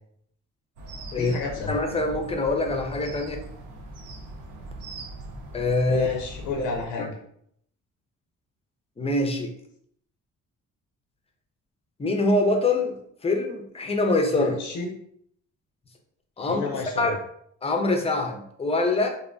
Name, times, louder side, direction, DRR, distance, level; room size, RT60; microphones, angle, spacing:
sound 1, 0.8-6.8, right 1 dB, 85° right, 0.6 m, -40 dB
voice 1, 1.1-1.8 5.9-7.1 14.3-14.9 16.4-17.2, left 4 dB, 80° left, 1 dB, 0.4 m, -31 dB
voice 2, 1.7-3.4 5.5-6.2 6.6-6.7 7.0-7.1 9.0-9.5 12.0-13.0 13.2-14.6 16.4-17.2 17.6-19.1, left 2 dB, 20° left, 3 dB, 0.4 m, -24 dB
2.6 x 2.1 x 2.4 m, 0.69 s
cardioid pair, 90°, 30 cm